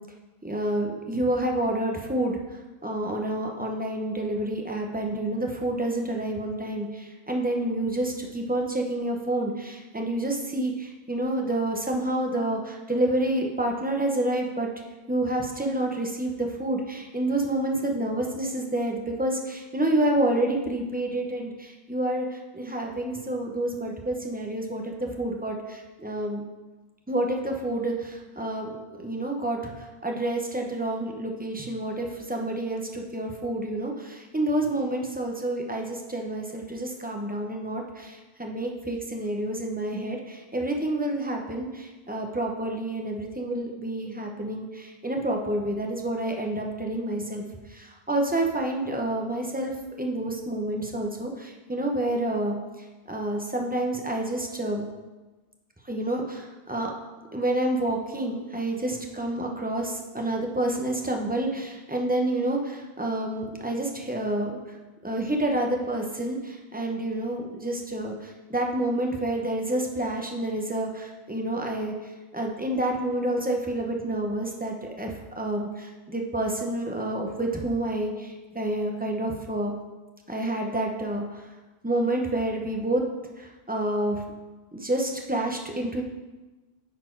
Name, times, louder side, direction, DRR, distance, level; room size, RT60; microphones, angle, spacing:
voice 1, 0.4-2.4 2.8-14.7 15.1-26.4 27.1-28.7 29.0-29.7 30.0-47.4 47.7-52.5 53.1-54.8 55.9-56.9 57.3-64.6 65.0-71.9 72.3-79.7 80.3-81.4 81.8-83.0 83.4-84.2 84.7-86.0, right 1 dB, 10° right, 1 dB, 0.8 m, -28 dB
9.9 x 4.3 x 4.6 m, 1.2 s
omnidirectional pair, 1.1 m